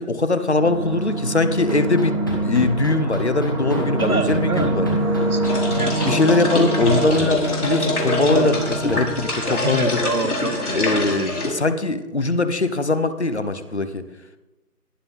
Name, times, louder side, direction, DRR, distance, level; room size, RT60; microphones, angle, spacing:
voice 1, 0.0-2.2 2.4-4.9 6.0-10.0 10.7-14.0, left 3 dB, 45° left, 11 dB, 1.1 m, -21 dB
sound 1, 0.6-10.3, right 1 dB, 15° right, 1.7 m, -25 dB
sound 2, 1.5-9.0, equal, 15° left, 1.4 m, -29 dB
voice 2, 4.0-6.0 9.5-11.6, right 3 dB, 65° right, 8 dB, 1.7 m, -27 dB
sound 3, 5.4-11.5, left 2 dB, 65° left, 5.0 m, -25 dB
18.0 x 11.5 x 3.6 m, 1.1 s
figure-of-eight pair, 175°, 47 cm